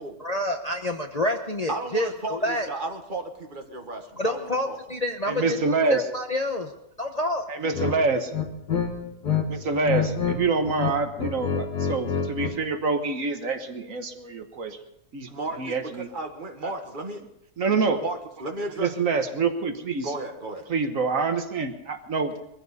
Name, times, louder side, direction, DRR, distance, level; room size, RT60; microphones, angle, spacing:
voice 1, 0.2-2.7 4.2-5.6 5.9-6.7 7.0-7.4, left 1 dB, 30° left, 3 dB, 0.8 m, -28 dB
voice 2, 1.7-4.8 15.3-17.2 18.0-18.9 20.0-20.7, right 2 dB, 35° right, 4 dB, 1.6 m, -34 dB
voice 3, 5.3-6.0 7.5-8.3 9.5-14.8 15.1-15.3 15.6-16.1 16.6-16.7 17.6-18.0 18.8-20.1 20.7-22.4, right 4 dB, 60° right, 7 dB, 1.5 m, -26 dB
sound 1, 7.7-8.0 8.3-9.4 9.7-10.4 10.7-12.6, left 7 dB, 85° left, 2.2 m, -27 dB
21.5 x 15.0 x 4.1 m, 0.80 s
omnidirectional pair, 1.7 m